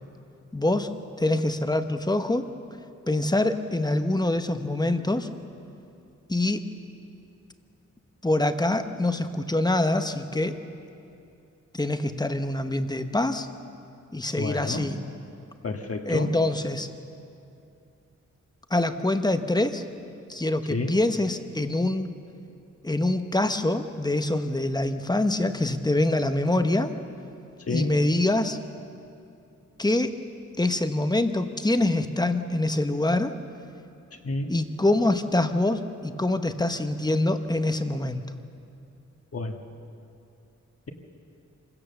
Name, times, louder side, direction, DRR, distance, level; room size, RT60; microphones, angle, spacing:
voice 1, 0.5-0.9 1.2-2.5 3.1-5.3 6.3-6.6 8.2-10.5 11.7-13.5 14.1-15.0 16.0-16.9 18.7-19.8 20.3-22.1 22.8-26.9 27.7-28.6 29.8-30.1 30.6-33.3 34.5-38.3, left 2 dB, 15° left, 8 dB, 0.9 m, -25 dB
voice 2, 14.4-14.9 15.6-16.3 20.7-20.9 27.7-27.9 34.2-34.5 39.3-39.6, left 3 dB, 50° left, 4 dB, 1.7 m, -30 dB
27.0 x 16.5 x 7.0 m, 2.6 s
wide cardioid pair, 135°, 30 cm